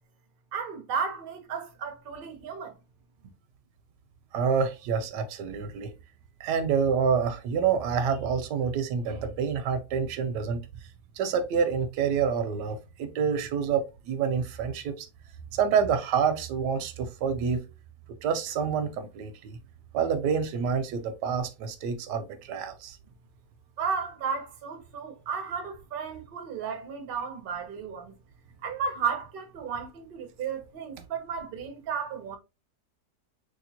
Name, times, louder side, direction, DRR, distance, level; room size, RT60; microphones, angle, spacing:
voice 1, 0.5-2.8 23.8-28.2 28.6-32.4, right 6 dB, 50° right, 0.7 m, -33 dB
voice 2, 4.3-5.9 6.4-10.6 11.2-15.1 15.5-17.6 18.2-19.6 19.9-23.0, right 6 dB, 85° right, 1.2 m, -27 dB
3.3 x 2.9 x 2.7 m
omnidirectional pair, 1.8 m